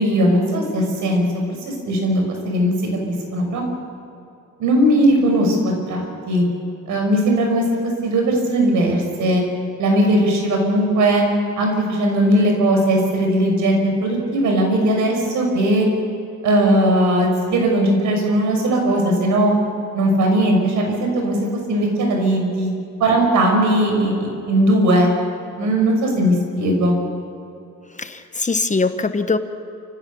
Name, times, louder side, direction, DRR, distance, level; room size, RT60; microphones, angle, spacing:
voice 1, 0.0-2.7 3.3-3.6 4.6-6.4 6.9-7.6 8.0-9.4 9.8-11.2 11.6-15.9 16.4-19.5 19.9-21.4 21.7-22.7 23.0-25.1 25.6-27.0, right 1 dB, 80° right, 2 dB, 6.5 m, -18 dB
voice 2, 28.0-29.4, left 3 dB, 25° left, 9 dB, 1.2 m, -21 dB
29.0 x 16.0 x 7.1 m, 2.7 s
cardioid pair, 90°, 30 cm